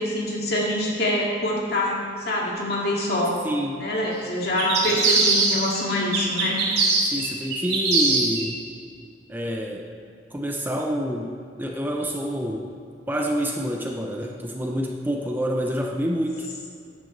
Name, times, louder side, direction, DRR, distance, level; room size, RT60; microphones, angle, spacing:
voice 1, 0.0-3.4 3.8-6.6, left 1 dB, 55° left, -3 dB, 2.4 m, -25 dB
voice 2, 3.4-3.9 4.8-5.0 7.0-8.6 9.3-9.9 10.3-12.7 13.1-16.5, equal, 10° right, 1 dB, 0.7 m, -27 dB
sound 1, 4.6-5.8 6.1-8.4, right 3 dB, 60° right, 3.1 m, -22 dB
13.5 x 10.5 x 3.3 m, 2.5 s
head